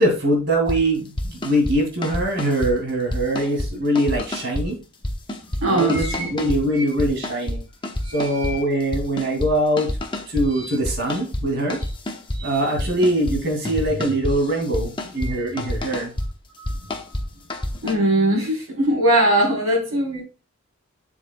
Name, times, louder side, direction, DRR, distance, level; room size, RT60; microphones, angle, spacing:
voice 1, 0.0-4.8 5.6-7.6 8.1-9.9 10.3-11.8 12.4-16.1, right 1 dB, 55° right, 2.5 m, -22 dB
sound 1, 0.7-0.8 1.2-1.8 2.0-2.7 3.1-3.7 4.0-4.7 5.0-6.6 7.0-7.6 7.8-8.5 8.8-9.5 9.8-10.5 10.8-11.4 11.7-12.4 12.8-13.4 13.6-15.3 15.6-16.3 16.7-17.2 17.5-17.9, left 1 dB, 20° left, 0.8 m, -27 dB
voice 2, 5.6-6.3 6.7-6.8 8.0-8.6 10.5-10.8 12.4-12.6 15.2-15.5 16.6-16.8 17.8-20.2, right 1 dB, 80° right, 4.3 m, -21 dB
7.4 x 7.2 x 2.2 m
head